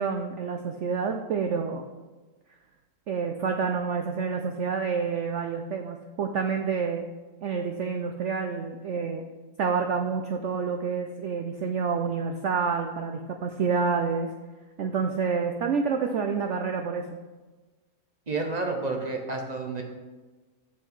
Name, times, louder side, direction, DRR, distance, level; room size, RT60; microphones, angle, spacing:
voice 1, 0.0-1.8 3.1-7.0 7.4-9.2 9.6-14.3 14.8-17.1, right 5 dB, 80° right, 5 dB, 0.6 m, -28 dB
voice 2, 18.3-19.8, right 3 dB, 35° right, 2 dB, 0.8 m, -30 dB
7.7 x 6.2 x 4.6 m, 1.2 s
omnidirectional pair, 1.9 m